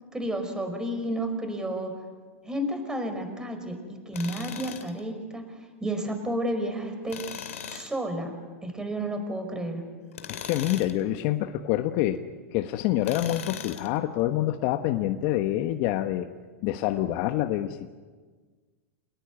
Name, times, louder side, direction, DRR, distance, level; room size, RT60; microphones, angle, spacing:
voice 1, 0.1-1.9 2.4-5.4 5.8-7.2 7.7-8.4 8.6-9.8, right 1 dB, 10° right, 6 dB, 5.4 m, -31 dB
Tools, 4.1-5.0 7.1-8.0 10.1-11.0 13.0-14.0, left 8 dB, 85° left, 2.5 m, -38 dB
voice 2, 10.3-12.2 12.5-16.3 16.6-17.9, left 13 dB, 50° left, 7 dB, 1.3 m, -26 dB
28.0 x 19.5 x 9.6 m, 1.5 s
hypercardioid pair, 125°, 7 cm